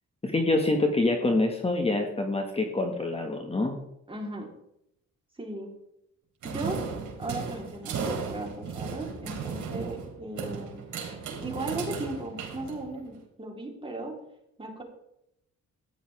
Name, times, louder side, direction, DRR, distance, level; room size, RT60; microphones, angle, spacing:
voice 1, 0.2-3.8, left 2 dB, 20° left, 3 dB, 1.7 m, -26 dB
voice 2, 4.1-4.5 5.4-5.7 6.4-6.8 7.2-10.8 11.4-14.2 14.6-14.8, right 2 dB, 15° right, 0 dB, 3.7 m, -36 dB
sound 1, 6.4-13.2, right 5 dB, 75° right, 3.8 m, -35 dB
14.0 x 10.0 x 3.5 m, 0.80 s
cardioid pair, 90°, 30 cm